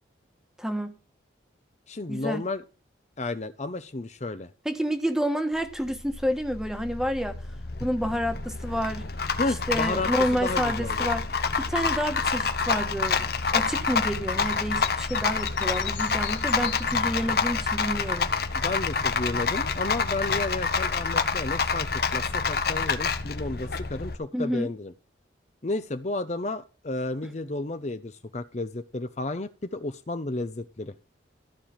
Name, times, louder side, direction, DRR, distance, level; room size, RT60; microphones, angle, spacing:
voice 1, 0.6-0.9 2.1-2.4 4.6-7.4 7.8-9.1 9.7-11.3 11.6-13.3 13.5-18.3 24.3-24.7, equal, 5° right, 1.3 m, -29 dB
voice 2, 1.9-2.6 3.2-4.5 9.4-10.1 10.4-11.1 18.5-24.9 25.6-30.9, left 2 dB, 35° left, 0.7 m, -32 dB
Rattle, 5.6-24.2, left 5 dB, 55° left, 1.2 m, -28 dB
sound 1, 14.4-17.6, left 11 dB, 75° left, 1.8 m, -39 dB
14.0 x 4.9 x 8.8 m
head